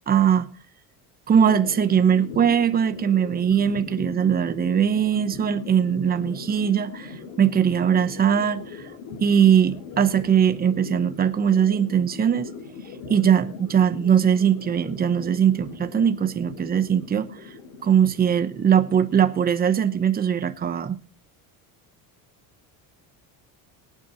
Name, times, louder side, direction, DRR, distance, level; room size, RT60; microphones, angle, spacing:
voice 1, 0.1-0.5 1.3-8.8 9.2-12.5 13.1-17.3 17.8-21.0, right 8 dB, 25° right, 0.9 m, -21 dB
sound 1, 1.3-20.8, left 4 dB, 85° left, 5.8 m, -40 dB
23.0 x 8.6 x 3.0 m
cardioid pair, 165°, 39 cm